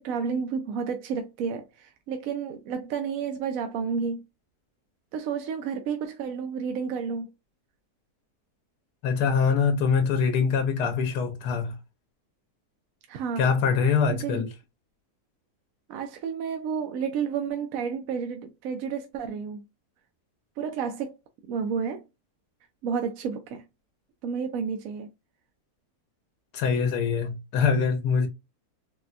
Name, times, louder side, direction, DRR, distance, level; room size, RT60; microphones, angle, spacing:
voice 1, 0.0-4.2 5.1-7.3 13.1-13.5 14.1-14.4 15.9-19.6 20.6-21.2 21.5-22.0 22.8-23.6 24.2-25.1, right 6 dB, 70° right, 0.9 m, -31 dB
voice 2, 9.0-11.7 13.4-14.5 26.5-28.3, left 5 dB, 90° left, 1.2 m, -24 dB
4.2 x 2.1 x 2.4 m
omnidirectional pair, 1.7 m